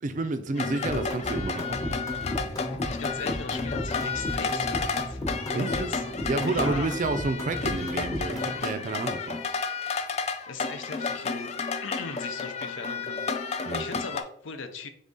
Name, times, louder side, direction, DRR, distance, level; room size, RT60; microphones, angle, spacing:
voice 1, 0.0-2.0 5.6-5.9 6.3-9.4 13.6-13.8, right 3 dB, 40° right, 0.4 m, -30 dB
sound 1, 0.6-14.2, left 4 dB, 35° left, 0.3 m, -32 dB
sound 2, 0.8-8.6, left 1 dB, 20° left, 0.8 m, -34 dB
voice 2, 2.7-5.2 5.5-6.0 6.5-7.0 9.8-10.2 10.5-11.5 11.8-14.9, left 4 dB, 85° left, 0.6 m, -39 dB
4.0 x 3.6 x 3.6 m
head